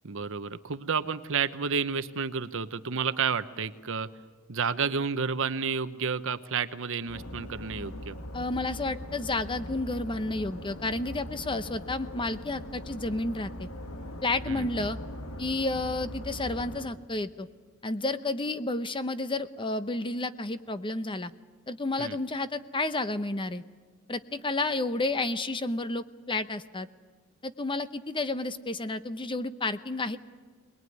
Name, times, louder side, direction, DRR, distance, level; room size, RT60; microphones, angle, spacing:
voice 1, 0.0-4.1 4.5-8.1 14.5-14.9 22.0-22.2, right 6 dB, 65° right, 12 dB, 0.9 m, -31 dB
sound 1, 7.1-16.9, left 1 dB, 85° left, 1.8 m, -40 dB
voice 2, 8.3-13.7 14.2-15.0 15.4-17.5 17.8-21.3 21.7-23.6 24.1-26.9 27.4-30.2, left 2 dB, 25° left, 12 dB, 0.8 m, -31 dB
22.0 x 21.0 x 9.5 m, 1.4 s
head